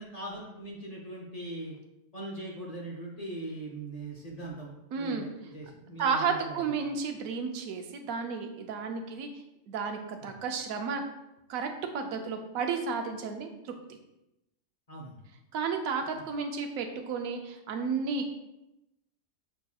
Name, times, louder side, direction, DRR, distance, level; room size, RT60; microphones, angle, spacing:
voice 1, 0.0-1.7 2.1-6.8 10.2-10.3 14.9-15.2 16.1-16.2, right 2 dB, 40° left, -3 dB, 0.6 m, -41 dB
voice 2, 4.9-5.3 6.0-9.3 9.7-11.0 11.5-11.7 11.9-13.7 15.5-18.3, right 5 dB, 85° right, 5 dB, 1.0 m, -32 dB
6.7 x 2.8 x 2.3 m, 0.90 s
omnidirectional pair, 1.4 m